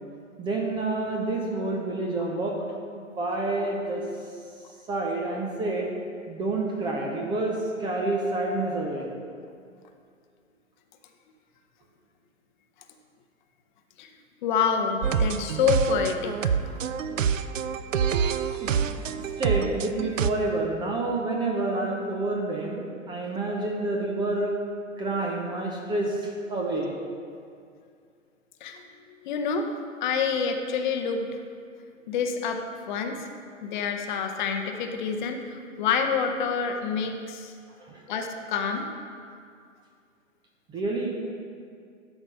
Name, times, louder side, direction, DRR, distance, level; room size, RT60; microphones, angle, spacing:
voice 1, 0.4-2.6 3.2-4.0 4.9-5.9 6.3-9.1 18.6-24.5 25.0-26.9 37.8-38.0 40.7-41.2, right 2 dB, 10° right, -1 dB, 0.6 m, -28 dB
voice 2, 14.4-16.6 18.5-18.6 28.6-28.8 29.2-29.7 30.0-31.4 32.1-33.3 33.6-37.5 38.1-38.9, left 6 dB, 35° left, 5 dB, 0.8 m, -27 dB
sound 1, 15.0-20.3, right 7 dB, 75° right, 0.5 m, -27 dB
11.5 x 5.0 x 5.5 m, 2.3 s
figure-of-eight pair, 120°, 39 cm